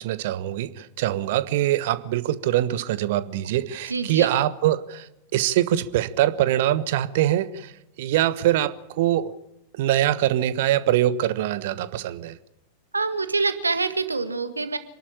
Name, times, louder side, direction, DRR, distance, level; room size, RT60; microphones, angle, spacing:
voice 1, 0.0-7.7 8.0-9.3 9.7-12.4, right 13 dB, 50° right, 15 dB, 1.2 m, -23 dB
voice 2, 3.9-4.3 12.9-14.8, right 4 dB, 80° right, 10 dB, 1.8 m, -25 dB
27.0 x 12.0 x 8.8 m, 0.90 s
figure-of-eight pair, 90°, 0 cm